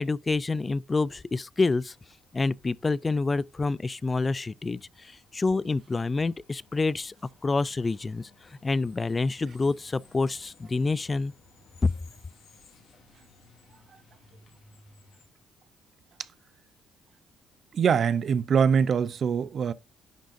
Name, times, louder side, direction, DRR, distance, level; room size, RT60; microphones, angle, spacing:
voice 1, 0.0-2.0 2.3-7.1 7.4-11.3 11.8-11.9, left 3 dB, 25° left, 0.3 m, -27 dB
sound 1, 1.7-15.3, left 3 dB, 65° left, 2.3 m, -59 dB
voice 2, 17.7-19.7, right 7 dB, 55° right, 0.5 m, -23 dB
10.5 x 3.7 x 2.6 m
cardioid pair, 90°, 0 cm